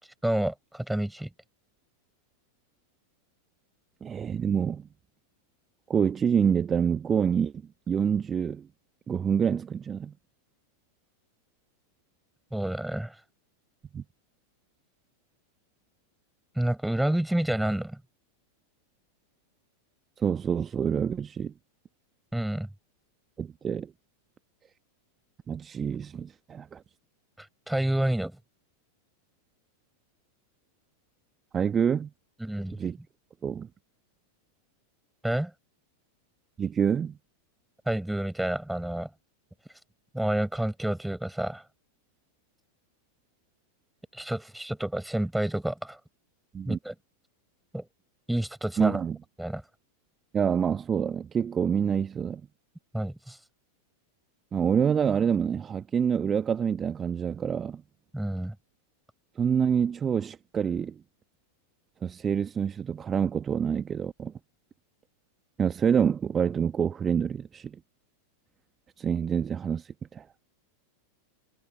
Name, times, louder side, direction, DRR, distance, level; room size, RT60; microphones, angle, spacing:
voice 1, 0.2-1.3 12.5-13.1 16.6-18.0 22.3-22.7 27.7-28.4 32.4-32.8 35.2-35.5 37.9-39.1 40.1-41.6 44.1-46.0 46.7-46.9 47.7-47.8 48.3-49.0 49.4-49.6 52.9-53.4 58.1-58.6, right 1 dB, 5° right, 7.0 m, -29 dB
voice 2, 4.0-4.9 5.9-7.5 7.9-8.7 9.1-10.1 13.9-14.0 20.2-21.5 23.4-23.9 25.5-26.8 31.5-32.1 32.8-33.0 33.4-33.7 36.6-37.2 46.5-46.8 48.8-49.2 50.3-52.4 54.5-57.8 59.4-61.0 62.0-64.3 65.6-67.8 69.0-70.2, right 7 dB, 20° right, 1.4 m, -27 dB
figure-of-eight pair, 90°, 0 cm